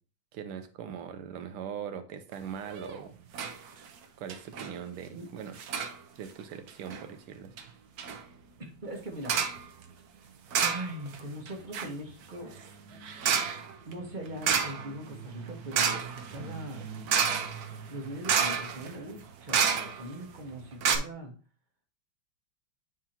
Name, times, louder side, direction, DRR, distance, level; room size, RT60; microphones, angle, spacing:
voice 1, 0.3-3.2 4.2-5.6 6.2-7.5, right 8 dB, 90° right, 8 dB, 1.7 m, -40 dB
sound 1, 2.7-3.0 3.3-3.6 3.9-4.0 4.3-4.7 5.6-6.0 6.7-7.0 7.6-7.7 8.0-8.2 9.2-9.6 10.5-11.2 11.5-20.2 20.5-20.6 20.8-21.0, right 7 dB, 65° right, 0.9 m, -30 dB
voice 2, 8.6-9.4 10.6-12.6 13.8-16.8 17.9-21.3, equal, 35° right, 1 dB, 0.8 m, -41 dB
9.3 x 3.7 x 2.8 m, 0.37 s
omnidirectional pair, 2.4 m